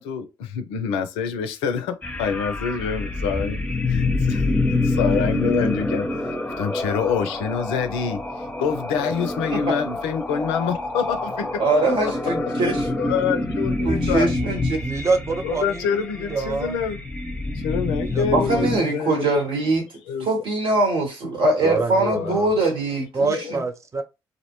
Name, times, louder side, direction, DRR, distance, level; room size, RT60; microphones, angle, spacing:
voice 1, 0.0-3.6 3.9-4.5 4.8-6.1 6.6-11.6 13.0-14.3 15.4-17.0 17.5-19.3 20.1-20.3 22.1-22.4 23.2-23.5, left 6 dB, 80° left, 0.4 m, -26 dB
sound 1, 2.0-18.8, left 2 dB, 15° left, 0.7 m, -26 dB
voice 2, 11.6-12.9 13.8-14.6 18.3-19.8 20.2-23.6, right 2 dB, 70° right, 1.1 m, -22 dB
voice 3, 14.8-16.7 18.1-18.2 18.5-18.9 21.6-22.5 23.1-24.0, right 4 dB, 35° right, 0.5 m, -26 dB
2.5 x 2.0 x 2.9 m
hypercardioid pair, 45°, 9 cm